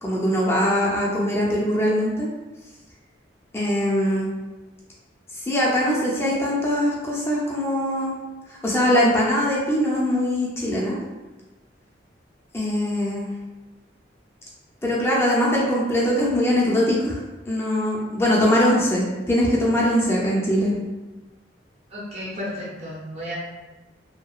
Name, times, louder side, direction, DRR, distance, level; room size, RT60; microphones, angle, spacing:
voice 1, 0.0-2.3 3.5-4.3 5.4-8.1 8.6-11.0 12.5-13.3 14.8-17.2 17.5-20.7, equal, 15° left, -5 dB, 0.5 m, -21 dB
voice 2, 21.9-23.4, equal, 35° right, -6 dB, 0.5 m, -33 dB
2.8 x 2.2 x 2.3 m, 1.2 s
head